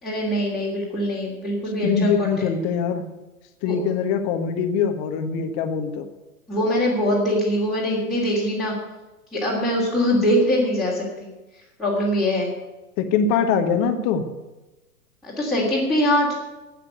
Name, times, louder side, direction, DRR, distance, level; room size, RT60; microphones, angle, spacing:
voice 1, 0.0-2.3 3.6-3.8 6.5-8.7 9.3-11.3 11.8-12.5 15.2-16.3, equal, ahead, -8 dB, 3.0 m, -22 dB
voice 2, 1.8-3.0 3.6-6.0 13.0-14.3, left 6 dB, 30° left, 8 dB, 1.4 m, -23 dB
12.0 x 8.9 x 9.2 m, 1.1 s
figure-of-eight pair, 110°, 45 cm